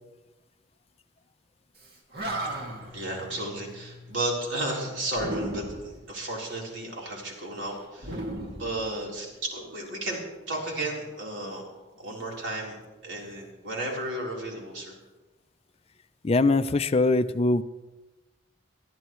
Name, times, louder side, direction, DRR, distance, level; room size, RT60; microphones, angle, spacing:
Animal, 1.8-1.9 2.1-3.0 5.1-6.0 8.0-9.3, right 1 dB, 55° right, 2.3 m, -34 dB
voice 1, 2.3-8.2 8.5-10.2 10.5-11.7 12.0-14.9, right 1 dB, 80° right, -2 dB, 3.9 m, -33 dB
voice 2, 16.2-17.6, left 2 dB, 30° left, 12 dB, 0.5 m, -22 dB
22.5 x 14.0 x 3.2 m, 1.1 s
head